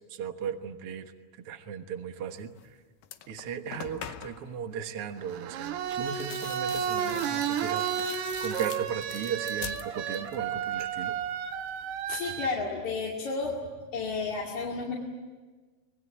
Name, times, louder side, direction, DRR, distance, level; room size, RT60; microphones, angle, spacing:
voice 1, 0.1-1.1 1.5-2.5 3.3-11.1, right 7 dB, 60° right, 7 dB, 1.5 m, -36 dB
sound 1, 2.6-2.7 3.0-4.5 5.9-10.4 10.7-11.3, left 11 dB, 70° left, 2.4 m, -44 dB
sound 2, 5.2-12.5, right 8 dB, 90° right, 3.4 m, -32 dB
voice 2, 12.1-13.6 13.9-14.9, left 4 dB, 50° left, -3 dB, 3.6 m, -32 dB
25.5 x 20.5 x 9.9 m, 1.4 s
omnidirectional pair, 4.5 m